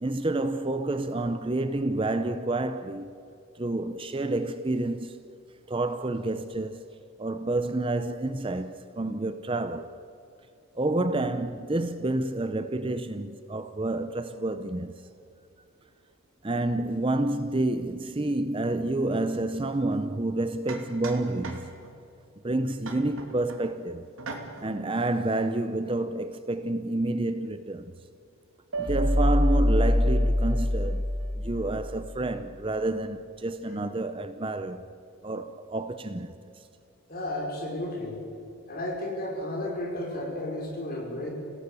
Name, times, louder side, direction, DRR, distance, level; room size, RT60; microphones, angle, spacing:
voice 1, 0.0-3.1 3.6-5.2 5.7-6.9 7.2-10.0 10.7-15.1 16.4-21.7 22.4-24.1 24.6-27.9 28.8-31.0 31.4-34.9 35.2-36.7, right 2 dB, 25° right, 0.6 m, -29 dB
sound 1, 19.9-20.0 20.7-22.0 22.8-23.7 24.2-24.8, right 3 dB, 65° right, 2.9 m, -40 dB
sound 2, 28.7-31.9, left 1 dB, 85° right, 4.5 m, -24 dB
voice 2, 37.1-38.2 38.7-41.3, left 1 dB, 40° left, 5.3 m, -33 dB
27.0 x 17.5 x 6.9 m
head